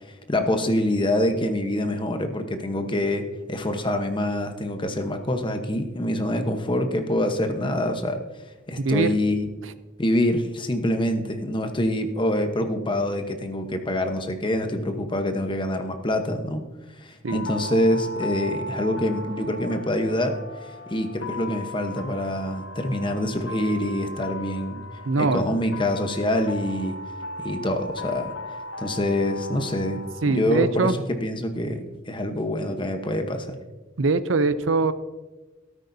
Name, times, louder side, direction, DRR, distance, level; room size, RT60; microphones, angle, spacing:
voice 1, 0.0-8.2 8.7-9.5 10.0-16.6 17.0-24.8 25.2-27.0 27.4-28.3 28.8-33.5, left 1 dB, 25° left, 6 dB, 1.1 m, -25 dB
voice 2, 8.8-9.2 17.2-17.5 25.1-25.6 30.2-30.9 34.0-34.9, right 3 dB, 90° right, 13 dB, 0.6 m, -22 dB
sound 1, 17.3-31.2, left 2 dB, 80° left, 0.8 m, -37 dB
13.5 x 13.5 x 2.8 m, 1.2 s
head